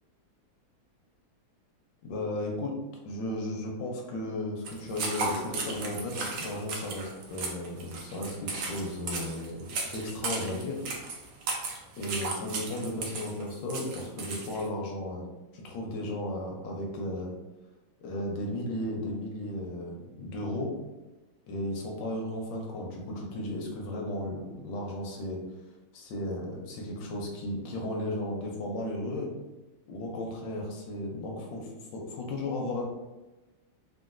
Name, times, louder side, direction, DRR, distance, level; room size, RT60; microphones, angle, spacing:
voice 1, 2.0-2.7 3.1-10.8 12.0-15.2 15.5-17.3 18.0-20.7 21.5-25.4 25.9-29.3 29.9-32.8, left 1 dB, 75° left, 0 dB, 1.1 m, -35 dB
sound 1, 4.7-14.7, right 3 dB, 70° right, 1.2 m, -36 dB
3.8 x 2.2 x 2.4 m, 1.1 s
omnidirectional pair, 2.3 m